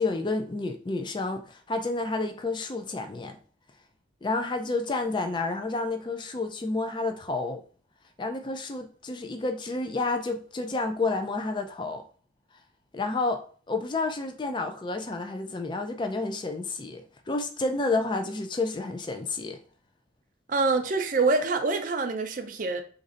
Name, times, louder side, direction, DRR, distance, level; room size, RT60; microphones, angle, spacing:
voice 1, 0.0-3.4 4.2-7.6 8.2-12.0 12.9-13.4 13.7-19.6, left 3 dB, 25° left, 0.4 m, -30 dB
voice 2, 20.5-22.8, right 3 dB, 45° right, 0.5 m, -25 dB
3.2 x 2.6 x 3.8 m
head